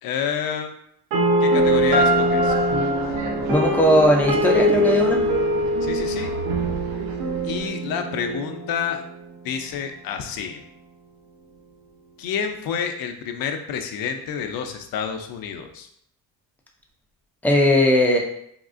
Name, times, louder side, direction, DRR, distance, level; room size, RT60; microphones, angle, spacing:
voice 1, 0.0-0.7 1.4-2.6 5.8-6.3 7.4-9.0 9.4-10.6 12.2-15.9, left 7 dB, 65° left, 6 dB, 0.5 m, -29 dB
sound 1, 1.1-9.1, equal, 85° right, 0.7 m, -22 dB
sound 2, 1.5-7.7, right 4 dB, 50° right, 0.5 m, -35 dB
voice 2, 3.5-5.2 17.4-18.2, left 1 dB, 5° left, 0 dB, 0.3 m, -18 dB
3.5 x 2.4 x 2.4 m, 0.70 s
cardioid pair, 140°, 38 cm